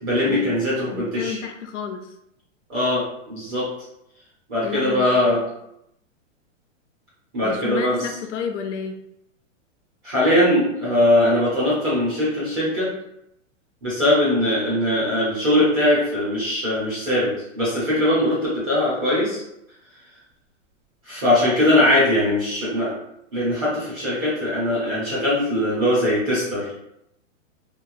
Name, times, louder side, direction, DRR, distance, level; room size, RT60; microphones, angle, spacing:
voice 1, 0.0-1.4 2.7-3.7 4.5-5.4 7.3-8.0 10.0-12.9 13.8-19.4 21.1-22.9 23.3-26.7, left 1 dB, 15° right, -9 dB, 0.4 m, -21 dB
voice 2, 0.9-2.1 4.6-5.4 7.4-9.0, left 7 dB, 65° left, 5 dB, 0.6 m, -31 dB
3.0 x 2.2 x 2.4 m, 0.79 s
hypercardioid pair, 150°, 39 cm